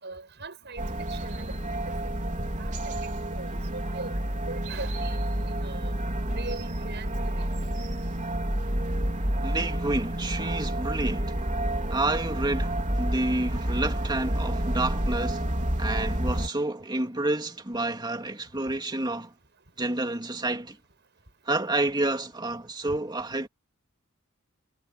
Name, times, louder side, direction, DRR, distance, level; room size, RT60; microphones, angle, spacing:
voice 1, 0.0-2.1 2.4-4.1 4.5-5.2 5.5-5.9 6.4-7.4, right 3 dB, 55° right, 7.9 m, -41 dB
sound 1, 0.8-16.5, right 1 dB, 40° right, 3.9 m, -29 dB
voice 2, 9.4-11.4 11.9-15.5 15.8-19.3 19.8-20.8 21.5-23.5, right 2 dB, 20° right, 2.8 m, -29 dB
head